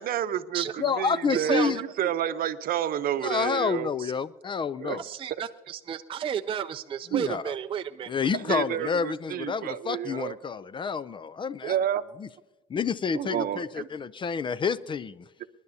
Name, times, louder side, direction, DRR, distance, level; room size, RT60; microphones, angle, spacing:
voice 1, 0.0-3.9 4.8-5.0 5.3-5.4 7.1-7.2 8.3-10.4 11.6-12.0 13.1-13.9, right 10 dB, 60° right, 11 dB, 0.8 m, -30 dB
voice 2, 0.8-1.8 3.2-5.0 7.1-7.5 8.1-11.8 12.2-12.3 12.7-15.2, left 6 dB, 30° left, 18 dB, 0.4 m, -29 dB
voice 3, 1.3-1.7 4.0-4.1 5.0-8.1 8.8-8.9, right 8 dB, 30° right, 8 dB, 0.4 m, -32 dB
27.0 x 11.0 x 2.7 m, 1.0 s
cardioid pair, 110°, 17 cm